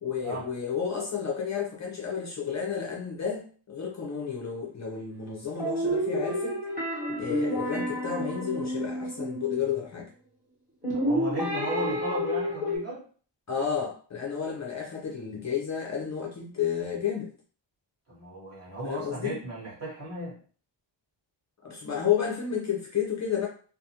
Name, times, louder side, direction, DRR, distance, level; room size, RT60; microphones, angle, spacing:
voice 1, 0.0-6.6 7.2-10.1 11.9-12.0 13.5-17.3 18.8-19.4 21.6-23.5, left 7 dB, 40° left, -2 dB, 0.4 m, -31 dB
sound 1, 5.6-9.8 10.8-12.8, equal, 15° right, 1.1 m, -30 dB
voice 2, 10.9-13.0 18.1-20.4, right 1 dB, 35° right, -6 dB, 1.4 m, -35 dB
2.5 x 2.4 x 2.7 m, 0.42 s
wide cardioid pair, 170°, 44 cm